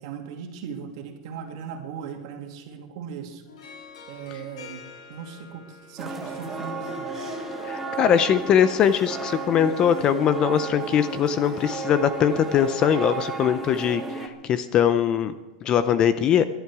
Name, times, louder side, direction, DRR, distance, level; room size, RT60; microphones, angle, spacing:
voice 1, 0.0-3.4 4.1-4.8 5.1-5.6 5.9-7.4, right 7 dB, 50° right, 4 dB, 2.3 m, -38 dB
Harp, 3.5-13.8, left 5 dB, 80° left, 3.3 m, -44 dB
sound 1, 6.0-14.3, right 5 dB, 10° right, 1.0 m, -34 dB
voice 2, 7.7-15.3 15.6-16.4, left 8 dB, 20° left, 12 dB, 0.5 m, -21 dB
22.0 x 11.5 x 4.8 m, 1.1 s
supercardioid pair, 180°, 4 cm